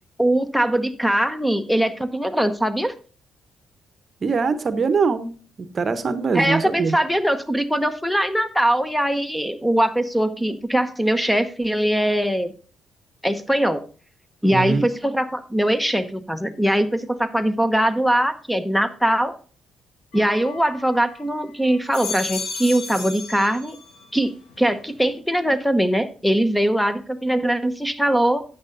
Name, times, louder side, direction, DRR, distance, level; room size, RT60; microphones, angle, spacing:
voice 1, 0.2-2.9 6.3-12.5 13.2-13.8 14.4-19.3 20.1-23.8 24.1-28.4, right 1 dB, 5° left, 11 dB, 0.9 m, -21 dB
voice 2, 4.2-5.3 5.7-7.0 14.5-14.9, right 4 dB, 45° right, 12 dB, 0.9 m, -22 dB
sound 1, 20.1-21.3 21.7-24.1 24.5-25.1, left 4 dB, 75° left, 1.7 m, -34 dB
12.5 x 8.4 x 2.6 m, 0.38 s
hypercardioid pair, 45°, 0 cm